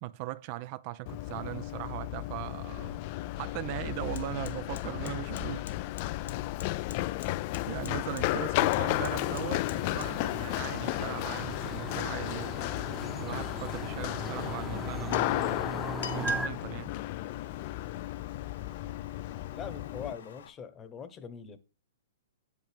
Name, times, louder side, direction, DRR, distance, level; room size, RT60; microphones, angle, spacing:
voice 1, 0.0-3.0 3.4-5.7 7.7-12.6 13.2-15.7 16.1-16.9, right 16 dB, 40° right, 0.4 m, -39 dB
Run, 1.1-20.1, left 17 dB, 40° left, 0.3 m, -33 dB
Fire, 4.2-20.5, left 8 dB, 70° left, 0.9 m, -49 dB
sound 1, 8.9-16.5, right 2 dB, 5° right, 0.8 m, -39 dB
voice 2, 19.5-21.6, left 7 dB, 20° left, 1.0 m, -42 dB
8.2 x 7.5 x 3.5 m
hypercardioid pair, 140°, 0 cm